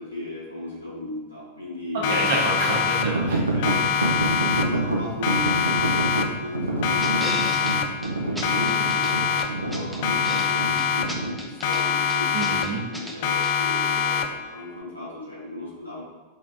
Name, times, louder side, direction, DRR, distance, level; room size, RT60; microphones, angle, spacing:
voice 1, 0.0-2.4 3.5-16.0, left 2 dB, 85° left, -7 dB, 1.4 m, -36 dB
voice 2, 1.9-3.5 12.3-12.8, right 2 dB, 55° right, -2 dB, 1.0 m, -27 dB
Siren, 2.0-3.3 3.6-4.9 5.2-6.5 6.8-8.1 8.4-9.7 10.0-11.3 11.6-12.9 13.2-14.5, left 7 dB, 50° left, 0.3 m, -25 dB
sound 1, 3.0-11.4, right 2 dB, 80° right, 0.5 m, -28 dB
sound 2, 7.0-7.7 8.0-8.1 8.3-9.1 9.4-10.5 10.8-11.8 12.1-13.2 13.4-13.5, equal, ahead, 0.6 m, -35 dB
4.8 x 3.1 x 2.8 m, 1.3 s
figure-of-eight pair, 90°, 0 cm